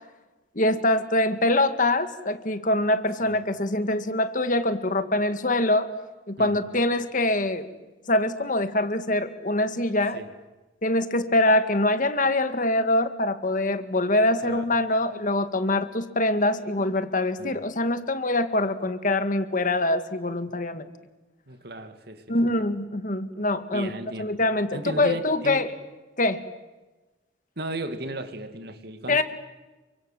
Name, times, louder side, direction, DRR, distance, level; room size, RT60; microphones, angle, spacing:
voice 1, 0.6-5.9 6.3-7.7 8.1-10.2 10.8-20.9 22.3-23.9 24.2-25.7 26.2-26.4 29.1-29.2, left 1 dB, 45° left, 10 dB, 1.9 m, -24 dB
voice 2, 21.5-22.4 23.7-24.4 24.7-25.6 27.6-29.2, right 2 dB, 60° right, 9 dB, 2.5 m, -35 dB
29.5 x 24.5 x 7.7 m, 1.2 s
head